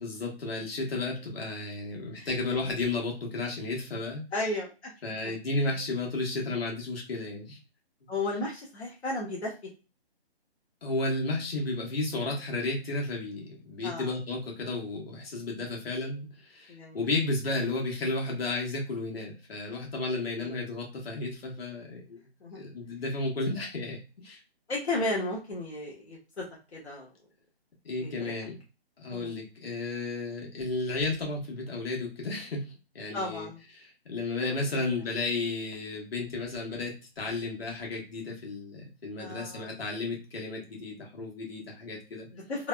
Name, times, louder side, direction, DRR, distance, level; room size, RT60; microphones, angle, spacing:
voice 1, 0.0-4.2 5.0-7.6 10.8-22.2 22.5-24.4 27.8-28.6 29.0-33.5 33.7-42.3, left 2 dB, 65° left, -1 dB, 1.3 m, -33 dB
voice 2, 4.3-4.9 8.1-9.7 13.8-14.1 16.7-17.1 20.4-20.6 22.4-22.6 24.7-26.4 26.7-27.1 28.0-28.4 29.1-29.3 33.1-33.6 34.7-34.8 39.2-39.7 42.3-42.7, left 2 dB, 80° left, -4 dB, 1.1 m, -34 dB
3.3 x 2.1 x 2.2 m, 0.32 s
hypercardioid pair, 155°, 32 cm